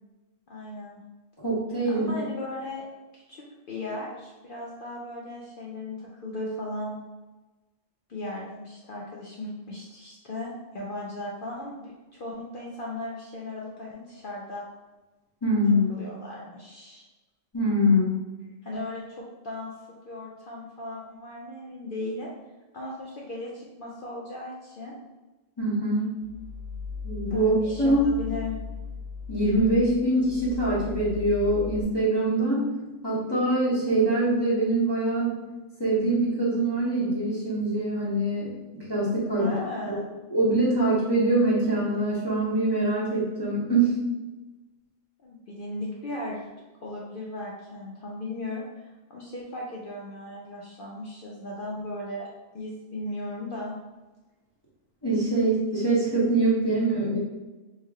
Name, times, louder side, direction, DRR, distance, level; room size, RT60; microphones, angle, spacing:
voice 1, 0.5-1.0 1.9-2.8 3.1-6.9 8.1-14.6 15.9-17.0 18.6-19.7 20.1-22.3 22.7-25.0 27.3-28.5 39.4-40.0 45.2-46.4 46.8-52.3 52.5-53.8, left 2 dB, 55° left, -4 dB, 0.7 m, -37 dB
voice 2, 1.4-2.1 15.4-15.9 17.5-18.1 25.6-26.2 27.0-28.1 29.3-32.6 33.0-35.4 35.8-39.5 39.8-40.0 40.3-44.0 55.0-57.2, right 1 dB, 20° left, -9 dB, 1.0 m, -24 dB
sound 1, 26.2-31.8, left 5 dB, 80° left, 1.0 m, -37 dB
3.2 x 2.9 x 3.5 m, 1.1 s
omnidirectional pair, 1.3 m